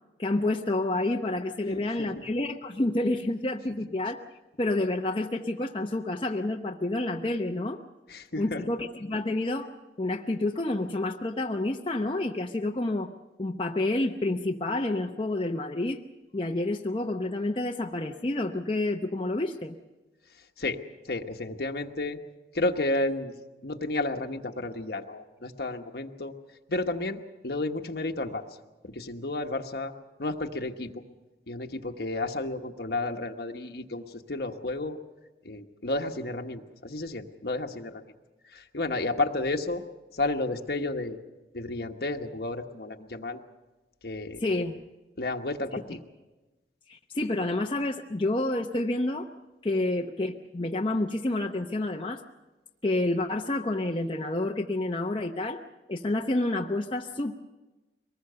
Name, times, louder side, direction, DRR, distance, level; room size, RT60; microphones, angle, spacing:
voice 1, 0.2-4.2 4.6-7.8 8.4-13.1 13.4-16.0 16.3-19.7 44.4-44.8 46.9-49.3 49.6-52.2 52.8-55.6 55.9-57.3, left 2 dB, 30° left, 1 dB, 0.7 m, -29 dB
voice 2, 1.7-2.1 8.1-8.6 20.6-20.8 21.1-22.2 22.5-23.3 23.6-26.3 26.7-28.5 28.9-29.9 30.2-31.0 31.5-35.0 35.4-38.0 38.5-39.8 40.1-41.2 41.5-43.4 44.0-44.4 45.2-46.0, left 2 dB, 60° left, 5 dB, 1.2 m, -32 dB
23.5 x 20.0 x 6.8 m, 1.1 s
head